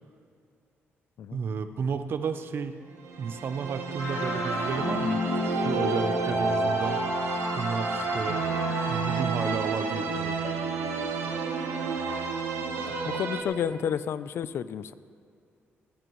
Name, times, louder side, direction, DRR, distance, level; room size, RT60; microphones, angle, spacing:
voice 1, 1.3-2.8 3.2-7.0 7.6-8.4 8.9-10.4, right 5 dB, 55° right, 9 dB, 0.7 m, -32 dB
sound 1, 3.0-13.4, right 5 dB, 90° right, 1.2 m, -31 dB
sound 2, 4.0-10.8, left 2 dB, 35° left, 3.5 m, -32 dB
voice 2, 12.9-14.9, left 8 dB, 65° left, 15 dB, 0.5 m, -31 dB
19.0 x 14.5 x 3.1 m, 2.4 s
cardioid pair, 120°, 5 cm